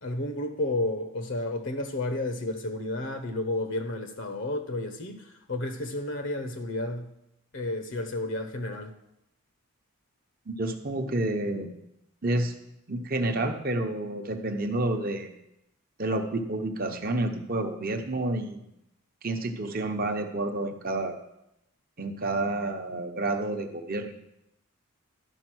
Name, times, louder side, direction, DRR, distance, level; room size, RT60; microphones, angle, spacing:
voice 1, 0.0-7.1 7.5-8.9, left 1 dB, 55° left, 8 dB, 0.8 m, -31 dB
voice 2, 10.5-11.7 12.2-12.5 12.9-15.3 16.0-18.7 19.2-21.2 22.0-24.2, right 2 dB, 40° right, 5 dB, 0.9 m, -29 dB
11.5 x 5.2 x 6.2 m, 0.84 s
head